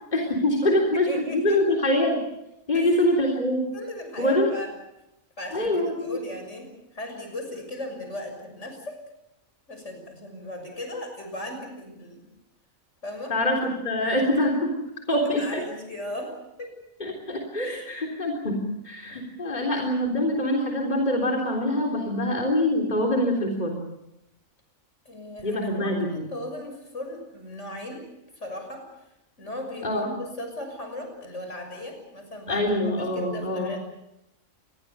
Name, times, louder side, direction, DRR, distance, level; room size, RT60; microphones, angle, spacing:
voice 1, 0.1-2.2 2.7-3.7 4.2-4.5 5.5-6.2 13.3-14.7 15.1-15.6 17.0-18.6 18.8-23.8 25.4-26.3 29.8-30.1 32.5-33.7, left 1 dB, 30° left, 0 dB, 3.9 m, -24 dB
voice 2, 0.6-1.6 2.7-3.1 3.7-4.7 5.4-9.0 9.7-12.3 13.0-13.4 15.2-16.8 17.6-17.9 19.1-19.2 25.1-28.0 28.4-28.9 29.4-33.8, left 1 dB, 55° left, 5 dB, 7.1 m, -37 dB
28.0 x 21.5 x 6.9 m, 0.86 s
omnidirectional pair, 1.4 m